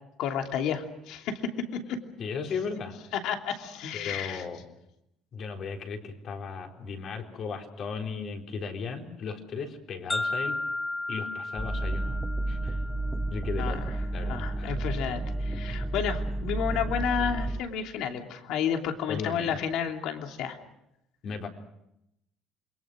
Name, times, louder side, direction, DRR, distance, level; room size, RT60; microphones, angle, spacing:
voice 1, 0.2-2.0 3.1-4.4 13.6-13.9 14.2-20.6, left 7 dB, 70° left, 4 dB, 3.0 m, -31 dB
voice 2, 2.2-3.0 3.9-4.6 5.3-10.6 11.1-12.8 13.3-14.7 19.1-19.6 21.2-21.5, left 5 dB, 50° left, 3 dB, 4.0 m, -36 dB
sound 1, 10.1-14.1, left 2 dB, 15° left, 1.5 m, -35 dB
sound 2, 11.6-17.6, right 2 dB, 5° right, 1.2 m, -31 dB
28.0 x 22.5 x 6.3 m, 0.82 s
cardioid pair, 130°, 0 cm